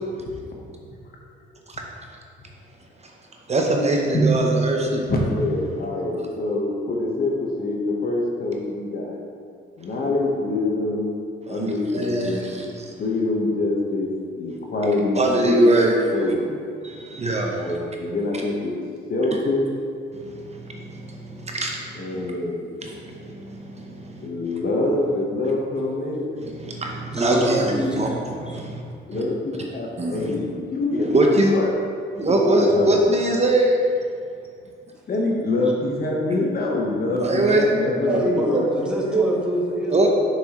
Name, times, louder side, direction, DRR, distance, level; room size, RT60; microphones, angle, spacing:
voice 1, 0.6-1.0 4.1-4.3 5.1-9.2 9.8-11.1 11.5-12.5 13.0-16.6 17.5-18.8 19.1-19.7 21.9-22.7 24.2-26.3 29.1-31.7 32.3-33.0 35.1-38.6, left 2 dB, 50° left, -1 dB, 1.3 m, -25 dB
voice 2, 3.5-5.1 11.5-12.9 15.2-15.9 16.8-17.7 20.1-21.8 22.8-24.3 26.4-28.1 28.4-28.8 29.1-29.2 30.0-30.3 31.1-31.5 32.2-33.8 37.2-37.6 38.0-38.6 39.1-39.3 39.9-40.1, right 1 dB, 35° right, 0 dB, 0.8 m, -22 dB
voice 3, 27.1-28.6 37.9-40.1, equal, 5° right, -3 dB, 1.3 m, -27 dB
7.1 x 5.9 x 3.1 m, 2.3 s
cardioid pair, 90°, 20 cm